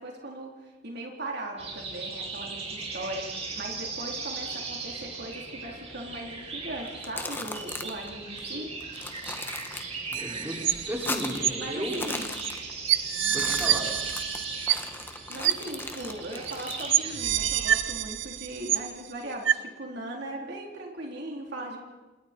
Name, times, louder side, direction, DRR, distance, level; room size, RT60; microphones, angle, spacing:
voice 1, 0.0-8.7 11.6-12.4 15.0-21.8, right 1 dB, 60° right, 0 dB, 3.8 m, -38 dB
sound 1, 1.6-17.8, right 4 dB, 35° right, 6.0 m, -38 dB
sound 2, 6.9-8.1 8.4-8.5 8.8-10.2 10.5-11.5 11.8-13.0 13.2-17.0, left 2 dB, 10° left, 1.5 m, -37 dB
voice 2, 10.1-12.0 13.3-13.9, equal, 10° right, -3 dB, 5.7 m, -34 dB
sound 3, 10.1-11.1 11.4-11.5 12.4-12.5 12.9-15.1 15.4-15.5 16.5-16.6 16.9-19.1 19.4-19.5, right 10 dB, 85° right, 1.0 m, -26 dB
29.0 x 28.5 x 4.5 m, 1.2 s
head